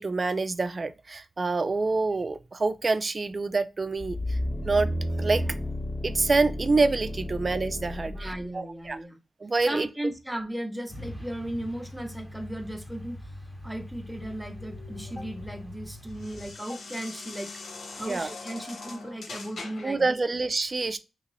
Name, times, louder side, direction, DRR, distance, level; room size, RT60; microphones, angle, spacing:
voice 1, 0.0-4.4 4.6-4.9 5.2-5.6 6.0-9.0 9.4-9.9 18.0-18.3 19.8-21.0, right 3 dB, 40° right, 0.4 m, -27 dB
sound 1, 4.0-8.4 8.9-9.0, equal, 50° left, 1.6 m, -32 dB
voice 2, 8.0-9.2 9.7-13.2 13.6-17.6 17.9-20.2, right 1 dB, 10° right, 0.8 m, -36 dB
Truck, 10.9-16.5, left 1 dB, 10° left, 1.0 m, -42 dB
sound 2, 14.2-20.0, left 3 dB, 75° left, 0.8 m, -43 dB
3.0 x 2.9 x 3.9 m
cardioid pair, 80°, 0 cm